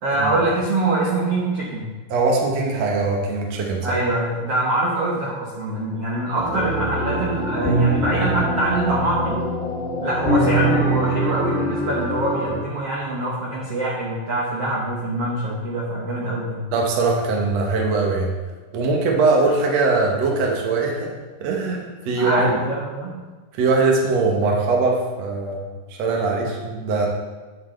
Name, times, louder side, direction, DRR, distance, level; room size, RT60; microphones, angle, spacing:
voice 1, 0.0-1.9 3.8-9.5 10.0-16.7 22.1-23.1, right 2 dB, 90° right, -5 dB, 1.3 m, -24 dB
voice 2, 2.1-4.0 16.7-18.3 18.7-21.1 21.4-22.5 23.6-25.7 26.0-27.1, right 3 dB, 70° right, 0 dB, 1.6 m, -21 dB
sound 1, 6.4-12.6, right 1 dB, 40° left, 0.9 m, -23 dB
9.5 x 7.7 x 3.2 m, 1.3 s
omnidirectional pair, 4.5 m